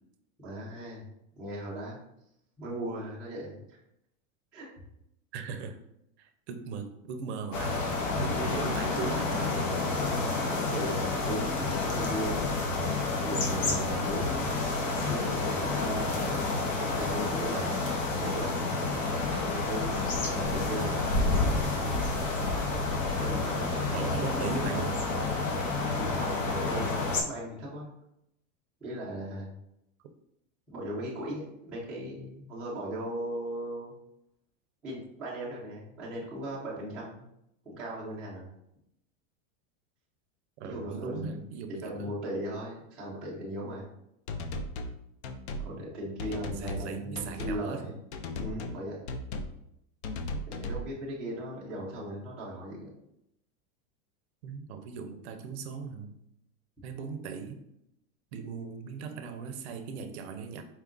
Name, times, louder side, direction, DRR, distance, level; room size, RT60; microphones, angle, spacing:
voice 1, 0.4-1.0 1.4-2.0 2.6-3.8 4.5-4.7 10.7-12.5 13.2-14.5 15.0-16.4 16.8-17.7 18.1-18.7 19.3-19.9 20.2-21.1 23.2-24.6 25.9-27.9 28.8-29.5 30.7-33.9 34.8-37.3 37.6-38.5 40.6-41.4 41.7-43.8 45.6-48.0 48.4-49.0 50.5-52.9, right 1 dB, ahead, -10 dB, 0.3 m, -38 dB
voice 2, 5.3-5.8 6.2-9.7 23.9-25.0 40.6-42.2 46.2-48.0 54.4-56.2 56.8-57.6 58.3-60.6, right 5 dB, 55° right, 8 dB, 0.5 m, -38 dB
sound 1, 7.5-27.2, left 3 dB, 75° left, 1.0 m, -29 dB
sound 2, 44.3-45.0 45.2-45.7 46.2-46.9 47.2-47.6 48.1-48.8 49.1-49.6 50.0-50.9, left 2 dB, 55° left, 0.5 m, -36 dB
4.4 x 2.3 x 3.6 m, 0.79 s
supercardioid pair, 165°, 40 cm